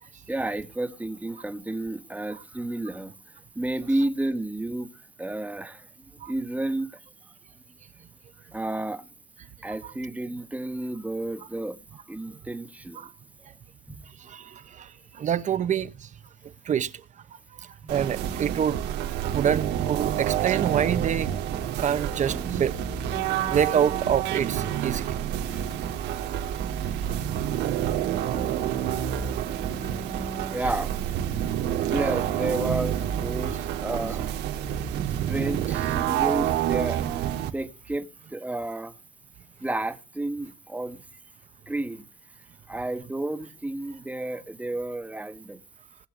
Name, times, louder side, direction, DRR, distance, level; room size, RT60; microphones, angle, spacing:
voice 1, 0.3-3.1 3.5-4.9 5.2-5.9 6.3-7.0 8.5-9.0 9.6-11.8 12.1-13.1 13.9-14.0 17.8-17.9 21.9-22.0 22.3-22.4 23.5-23.6 25.1-25.2 25.5-25.6 26.7-26.8 27.5-27.8 28.2-28.6 30.5-30.9 31.9-34.3 35.3-38.9 39.6-41.0 41.7-42.0 42.7-45.6, right 1 dB, 10° right, 1.4 m, -31 dB
voice 2, 14.2-16.1 16.6-17.0 17.6-18.8 19.2-21.3 21.8-22.8 23.5-25.2 26.0-26.1 26.6-27.4 28.3-28.4 29.8-29.9, right 8 dB, 45° right, 1.0 m, -27 dB
sound 1, 17.9-37.5, right 10 dB, 90° right, 2.3 m, -28 dB
19.5 x 7.5 x 5.1 m
cardioid pair, 110°, 17 cm